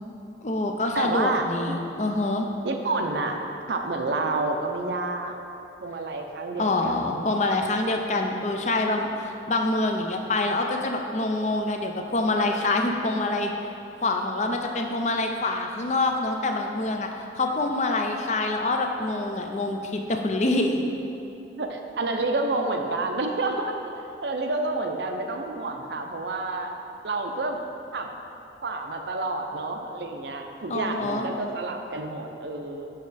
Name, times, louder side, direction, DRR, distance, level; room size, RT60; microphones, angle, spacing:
voice 1, 0.4-2.5 6.6-13.5 14.0-17.1 17.3-20.8 30.7-31.3, left 2 dB, 40° left, 3 dB, 0.5 m, -26 dB
voice 2, 0.9-1.8 2.6-3.4 3.7-5.4 5.8-7.3 21.6-23.9 24.2-26.7 27.0-27.6 27.9-28.1 28.6-32.9, right 2 dB, 70° right, 4 dB, 0.6 m, -29 dB
6.5 x 6.1 x 4.1 m, 2.8 s
head